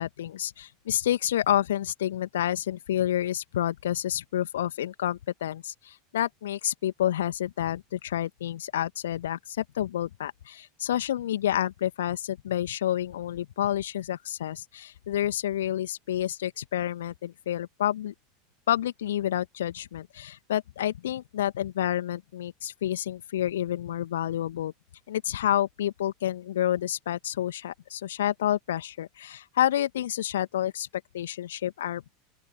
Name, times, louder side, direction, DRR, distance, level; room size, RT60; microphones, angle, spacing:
voice 1, 0.0-18.1 18.7-24.7 25.1-30.9 31.1-32.0, left 11 dB, 65° left, 2.4 m, -29 dB
open air
figure-of-eight pair, 80°, 0 cm